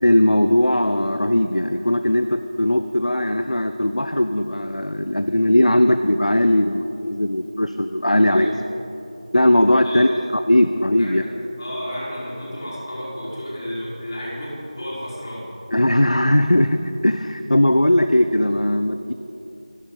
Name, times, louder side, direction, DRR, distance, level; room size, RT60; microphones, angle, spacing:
voice 1, 0.0-8.5 9.3-11.2 15.7-19.1, left 1 dB, 75° left, 9 dB, 0.8 m, -19 dB
voice 2, 8.2-8.6 9.8-10.2 11.0-15.5, equal, 35° left, -7 dB, 5.0 m, -32 dB
27.5 x 13.0 x 4.0 m, 2.9 s
figure-of-eight pair, 170°, 4 cm